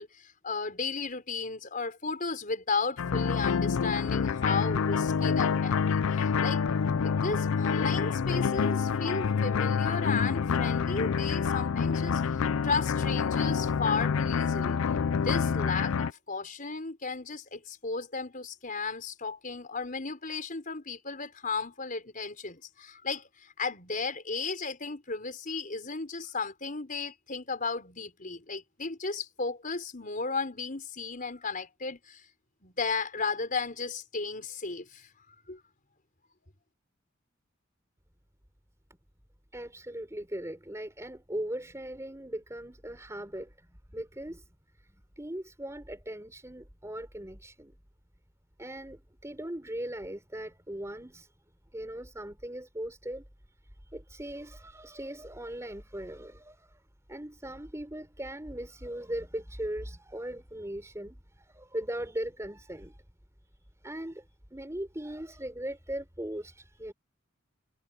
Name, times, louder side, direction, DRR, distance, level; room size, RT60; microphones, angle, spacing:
voice 1, 0.0-6.6 7.0-14.8 15.1-32.3 32.6-35.6, left 4 dB, 40° left, 4.9 m, -34 dB
sound 1, 3.0-16.1, left 6 dB, 85° left, 0.4 m, -27 dB
voice 2, 39.5-44.5 44.8-47.8 48.6-51.3 51.7-53.2 53.9-56.8 57.1-63.0 63.6-66.9, right 1 dB, 15° right, 4.3 m, -39 dB
head